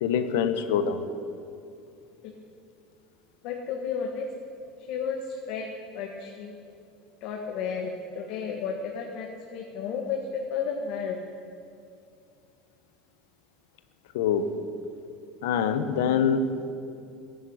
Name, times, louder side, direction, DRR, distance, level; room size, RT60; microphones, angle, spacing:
voice 1, 0.0-1.0 14.1-14.5 15.4-16.7, left 7 dB, 85° left, 10 dB, 1.1 m, -25 dB
voice 2, 3.4-4.3 4.9-5.7 5.9-6.5 7.2-11.2, left 6 dB, 65° left, 1 dB, 1.6 m, -32 dB
15.5 x 9.1 x 9.5 m, 2.5 s
supercardioid pair, 120°, 0 cm